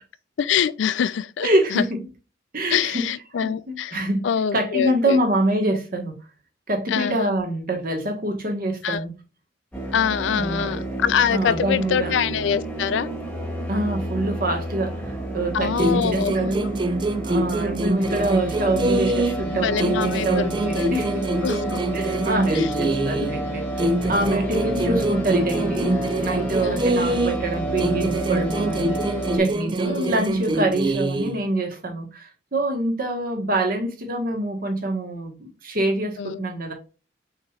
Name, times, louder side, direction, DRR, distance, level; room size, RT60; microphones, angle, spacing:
voice 1, 0.4-1.8 2.7-5.2 6.9-7.4 8.8-9.1 9.9-13.1 15.5-16.5 19.5-21.8 22.5-22.7 23.2-23.3 24.1-24.7 26.6-26.9 29.8-30.1 36.2-36.5, left 8 dB, 80° left, 0.4 m, -25 dB
voice 2, 1.4-1.9 2.5-3.0 3.4-4.2 4.5-6.1 6.7-9.1 10.3-10.8 11.3-12.1 13.7-14.9 15.3-16.6 17.2-21.2 21.9-23.6 24.1-29.0 29.3-32.1 32.5-36.7, right 1 dB, 50° right, 1.3 m, -25 dB
sound 1, 9.7-29.4, right 1 dB, 5° left, 1.2 m, -30 dB
sound 2, 15.8-19.5 19.8-23.4 23.8-27.5 27.8-31.4, right 1 dB, 25° right, 0.4 m, -25 dB
6.4 x 3.1 x 2.4 m
head